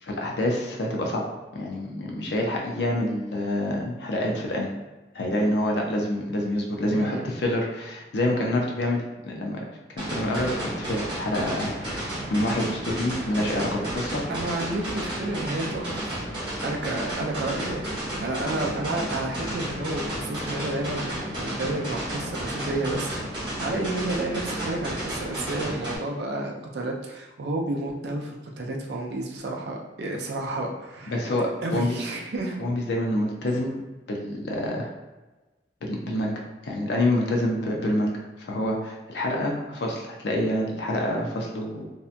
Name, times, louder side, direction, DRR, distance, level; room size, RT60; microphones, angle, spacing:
voice 1, 0.0-1.2 1.5-4.7 5.1-9.6 10.0-14.2 31.1-31.9 32.6-33.8 34.1-34.9 35.8-36.3 36.6-41.9, left 1 dB, 65° left, 0 dB, 0.5 m, -27 dB
voice 2, 6.9-7.3 14.3-16.2 16.6-31.3 31.6-32.6 33.5-33.6, right 2 dB, 60° right, 0 dB, 0.4 m, -31 dB
sound 1, 10.0-26.0, right 1 dB, 25° right, 0.9 m, -32 dB
2.7 x 2.2 x 2.5 m, 1.1 s
head